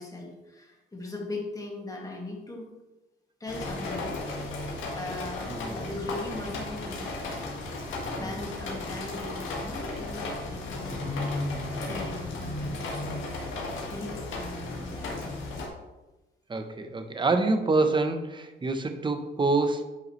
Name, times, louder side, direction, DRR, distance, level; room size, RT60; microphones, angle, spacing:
voice 1, 0.0-2.7 3.4-4.2 5.0-7.2 8.1-11.2 11.8-13.3 13.9-15.5, left 2 dB, 20° left, -1 dB, 2.1 m, -39 dB
sound 1, 3.5-15.7, left 2 dB, 80° left, 1.9 m, -34 dB
voice 2, 5.5-5.9 8.1-8.3 16.5-19.8, right 3 dB, 25° right, 7 dB, 0.9 m, -26 dB
9.5 x 5.6 x 3.2 m, 1.1 s
cardioid pair, 90°, 20 cm